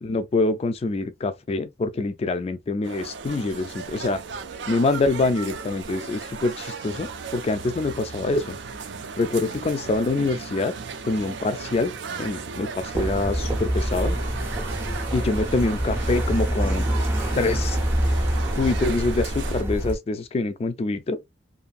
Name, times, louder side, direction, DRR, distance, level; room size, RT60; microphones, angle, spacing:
voice 1, 0.0-4.2 4.7-8.6 9.2-10.7 11.1-11.9 12.2-14.2 15.1-16.9 17.4-17.8 18.6-21.2, left 3 dB, 35° left, 0.3 m, -25 dB
sound 1, 2.8-19.6, right 5 dB, 70° right, 0.4 m, -36 dB
sound 2, 12.9-20.0, right 1 dB, 15° right, 0.6 m, -25 dB
2.6 x 2.5 x 2.3 m
head